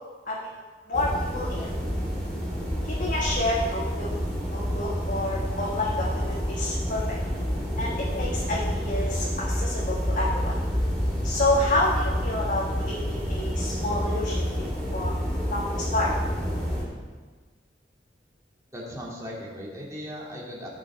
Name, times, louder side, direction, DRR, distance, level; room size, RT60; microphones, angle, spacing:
voice 1, 0.9-1.7 2.8-4.1 4.5-7.2 7.8-10.5 11.2-15.1 15.5-16.1, left 2 dB, 50° left, -5 dB, 1.4 m, -29 dB
sound 1, 0.9-16.8, equal, ahead, 3.0 m, -29 dB
voice 2, 18.7-20.7, equal, 20° right, -4 dB, 2.2 m, -37 dB
16.0 x 5.5 x 4.4 m, 1.4 s
head